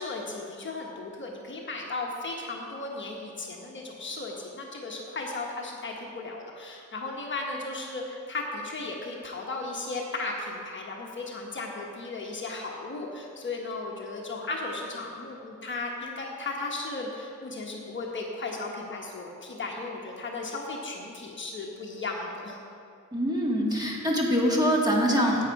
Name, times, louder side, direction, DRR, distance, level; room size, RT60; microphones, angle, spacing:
voice 1, 0.0-22.6, left 3 dB, 35° left, -1 dB, 1.0 m, -35 dB
voice 2, 23.1-25.4, equal, 10° right, -2 dB, 1.5 m, -24 dB
10.5 x 8.5 x 4.6 m, 2.5 s
wide cardioid pair, 150°, 32 cm